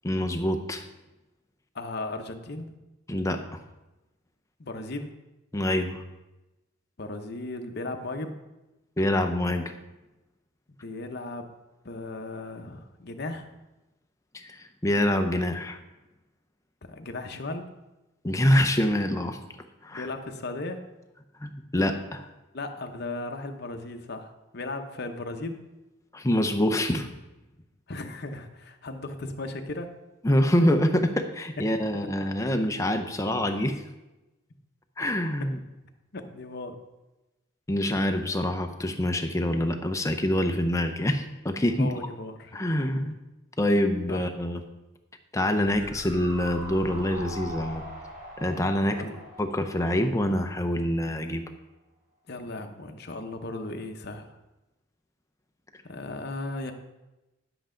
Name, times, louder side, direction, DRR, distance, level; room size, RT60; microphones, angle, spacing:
voice 1, 0.0-0.8 3.1-3.6 5.5-6.0 9.0-9.7 14.3-15.8 18.2-19.4 19.8-20.1 21.4-22.3 26.1-27.1 30.2-33.8 35.0-35.6 37.7-41.9 42.5-43.1 43.6-44.6 45.3-47.8 48.4-49.0 49.4-51.4, left 1 dB, 15° left, 6 dB, 0.6 m, -25 dB
voice 2, 1.7-2.7 4.6-5.1 7.0-8.4 10.8-11.5 11.8-13.5 16.9-17.7 19.9-20.8 22.5-25.6 27.9-29.9 36.1-36.8 41.8-42.6 43.0-43.1 44.1-44.2 48.9-49.2 52.3-54.3 55.8-56.7, left 2 dB, 50° left, 5 dB, 0.8 m, -36 dB
sound 1, 45.7-50.9 51.2-51.3, equal, 50° right, 3.3 m, -42 dB
10.0 x 7.8 x 3.8 m, 1.0 s
head